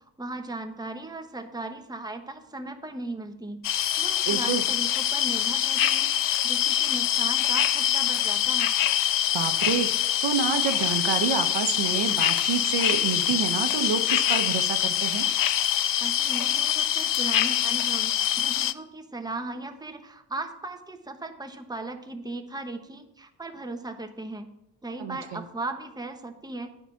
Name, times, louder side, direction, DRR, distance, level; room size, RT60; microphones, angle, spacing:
voice 1, 0.2-3.6 4.0-6.1 6.4-8.8 16.0-24.5 24.8-26.7, right 2 dB, 10° right, 5 dB, 1.1 m, -37 dB
sound 1, 3.6-18.7, left 11 dB, 45° left, 0.5 m, -24 dB
voice 2, 4.3-4.6 9.3-15.3 25.0-25.4, right 7 dB, 65° right, 8 dB, 1.0 m, -28 dB
9.1 x 4.9 x 7.1 m, 0.84 s
supercardioid pair, 60°, 45 cm